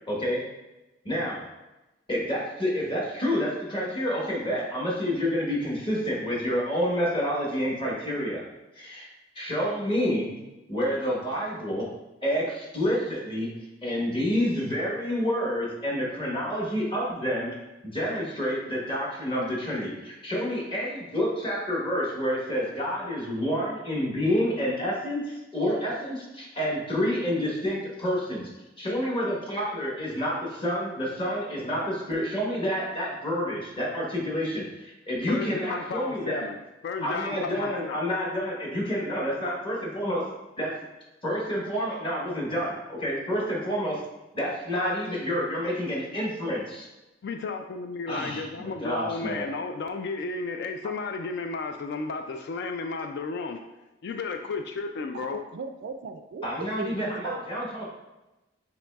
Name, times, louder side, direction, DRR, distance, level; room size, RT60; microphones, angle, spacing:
voice 1, 0.1-0.4 1.0-1.4 2.1-8.4 8.7-9.1 9.3-10.4 10.7-11.9 12.2-13.5 13.8-17.5 17.8-28.5 28.8-36.5 37.0-40.2 40.6-40.7 41.2-44.0 44.3-46.9 48.1-49.4 56.4-57.9, equal, 25° left, -4 dB, 1.2 m, -28 dB
voice 2, 35.3-38.0 47.2-53.6 54.0-55.4, left 4 dB, 60° left, 5 dB, 0.3 m, -33 dB
voice 3, 55.1-57.0 57.2-57.5, right 4 dB, 60° right, 8 dB, 0.3 m, -37 dB
7.1 x 3.1 x 2.3 m, 1.0 s
head